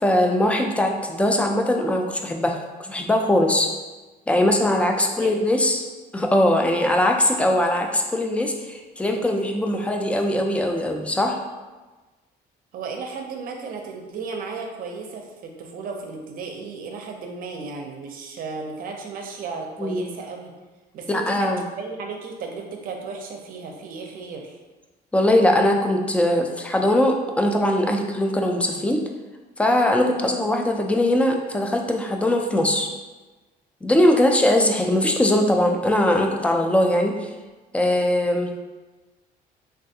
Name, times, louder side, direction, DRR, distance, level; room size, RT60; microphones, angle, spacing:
voice 1, 0.0-3.7 4.3-5.8 6.1-11.4 19.8-20.1 21.1-21.6 25.1-29.0 29.6-32.9 33.8-37.3 37.7-38.5, left 1 dB, 5° left, 3 dB, 0.3 m, -21 dB
voice 2, 5.0-5.5 12.7-20.5 20.9-24.6 30.1-30.3, right 4 dB, 55° right, 2 dB, 0.5 m, -35 dB
3.3 x 2.3 x 2.7 m, 1.2 s
cardioid pair, 110°, 17 cm